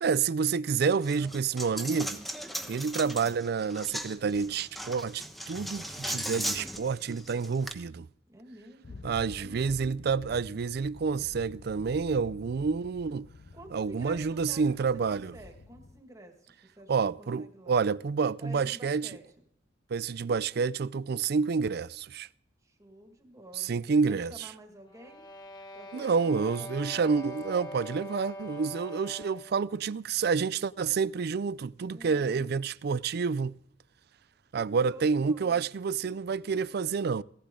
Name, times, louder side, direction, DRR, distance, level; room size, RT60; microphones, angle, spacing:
voice 1, 0.0-2.2 2.7-8.1 9.0-13.3 13.7-15.3 16.9-19.1 19.9-22.3 23.6-24.3 25.9-33.6 34.5-37.2, right 5 dB, 60° right, 0.4 m, -29 dB
Coin (dropping), 1.0-7.7, equal, ahead, 1.0 m, -38 dB
voice 2, 8.3-9.7 13.5-16.9 17.2-17.8 18.4-19.2 22.6-25.3 25.7-27.0 31.9-32.5 34.9-35.6, equal, 20° right, 1.9 m, -50 dB
sound 1, 8.8-16.0, left 3 dB, 60° left, 0.6 m, -48 dB
sound 2, 24.9-29.6, left 1 dB, 20° left, 1.4 m, -43 dB
16.5 x 15.0 x 3.8 m
head